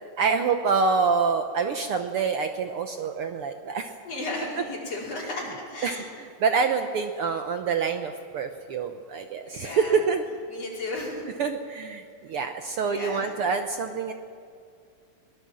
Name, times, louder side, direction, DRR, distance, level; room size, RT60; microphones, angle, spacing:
voice 1, 0.2-3.9 5.8-10.2 11.4-14.1, right 5 dB, 75° right, 6 dB, 1.2 m, -26 dB
voice 2, 4.0-6.1 9.4-10.0 10.5-11.3 12.9-13.4, left 2 dB, 50° left, -4 dB, 5.9 m, -34 dB
22.5 x 19.0 x 7.5 m, 2.2 s
omnidirectional pair, 3.6 m